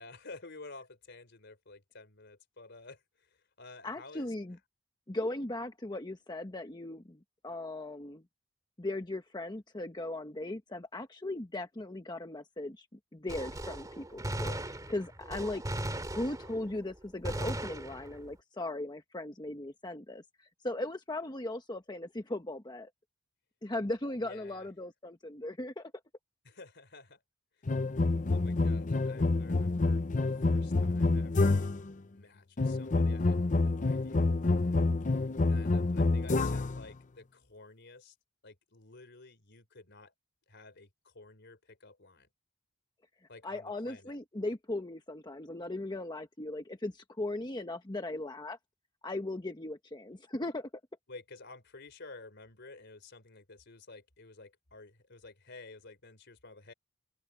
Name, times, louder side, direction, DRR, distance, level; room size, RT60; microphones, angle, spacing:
voice 1, 0.0-4.3 24.2-24.7 26.4-27.2 27.6-27.7 28.2-31.6 32.1-35.0 35.5-38.2 38.4-40.1 40.5-42.3 43.3-44.2 51.1-56.7, left 3 dB, 60° left, 3.9 m, -52 dB
voice 2, 3.8-4.6 5.1-8.2 8.8-12.8 13.1-15.6 16.1-22.9 23.6-25.9 43.4-48.6 49.0-50.7, left 2 dB, 20° left, 1.1 m, -38 dB
Gunshot gunfire, 13.3-16.8 17.2-18.3, right 1 dB, 20° right, 2.2 m, -38 dB
sound 1, 27.7-31.9 32.6-36.8, left 3 dB, 40° left, 0.7 m, -28 dB
open air
head